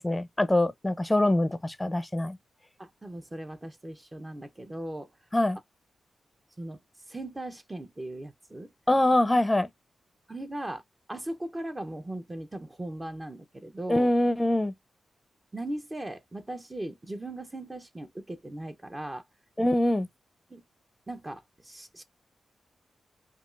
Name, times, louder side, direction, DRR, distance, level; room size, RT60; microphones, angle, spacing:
voice 1, 0.0-2.4 5.3-5.6 8.9-9.7 13.9-14.7 19.6-20.1, left 1 dB, 15° left, 0.6 m, -24 dB
voice 2, 2.8-5.1 6.6-6.8 7.1-8.7 10.3-10.8 11.1-14.1 15.5-19.2 20.5-20.6 21.1-22.0, right 1 dB, 25° right, 0.8 m, -38 dB
5.1 x 2.4 x 2.5 m
cardioid pair, 60°, 0 cm